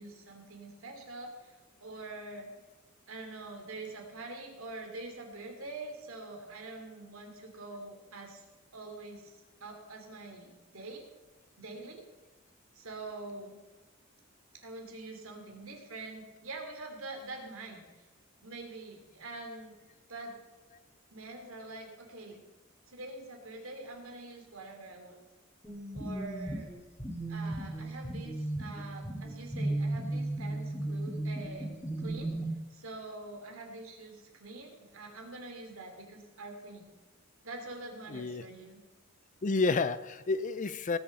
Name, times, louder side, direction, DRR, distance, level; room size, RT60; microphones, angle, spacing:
voice 1, 0.0-2.5 3.1-8.4 8.7-11.0 11.6-12.1 12.7-13.6 14.6-18.0 18.4-19.7 20.1-20.3 21.1-22.4 22.9-25.2 25.9-26.7 27.3-31.7 32.0-32.3 32.7-36.9 37.4-38.8, right 2 dB, 75° right, 3 dB, 2.8 m, -45 dB
sound 1, 25.6-32.5, right 1 dB, 15° left, 2.2 m, -35 dB
voice 2, 38.1-38.4 39.4-41.0, left 3 dB, 35° left, 15 dB, 0.5 m, -30 dB
18.5 x 7.1 x 5.4 m, 1.2 s
head